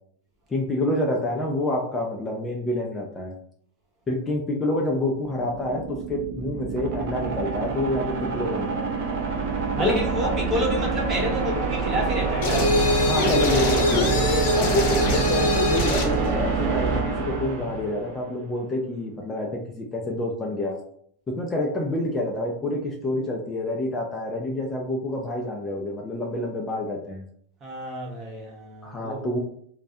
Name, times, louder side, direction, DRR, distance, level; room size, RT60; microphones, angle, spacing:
voice 1, 0.5-3.3 4.1-8.9 9.8-10.3 13.1-14.2 14.5-20.8 21.4-27.2 28.8-29.4, left 1 dB, 15° left, 1 dB, 0.4 m, -28 dB
sound 1, 5.2-18.3, right 4 dB, 60° right, 0.4 m, -26 dB
voice 2, 9.8-12.7 27.6-29.2, right 1 dB, 30° right, -1 dB, 0.8 m, -29 dB
sound 2, 12.4-16.2, left 2 dB, 65° left, 0.8 m, -23 dB
2.3 x 2.0 x 2.6 m, 0.64 s
supercardioid pair, 140°, 0 cm